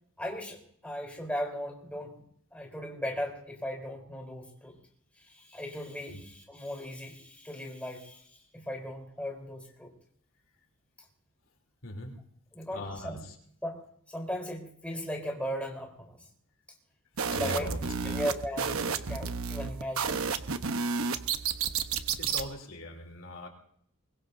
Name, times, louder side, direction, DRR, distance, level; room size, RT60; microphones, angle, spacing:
voice 1, 0.2-2.2 2.5-4.8 5.2-9.9 12.5-13.2 13.6-13.8 14.1-16.2 17.4-17.8 18.0-20.2, equal, 5° left, -1 dB, 3.7 m, -37 dB
voice 2, 11.8-12.1 12.7-13.2 17.3-18.2 22.2-23.5, left 1 dB, 65° left, 2 dB, 3.1 m, -40 dB
sound 1, 17.2-22.5, right 5 dB, 75° right, 1.0 m, -31 dB
24.0 x 22.0 x 2.7 m, 0.65 s
head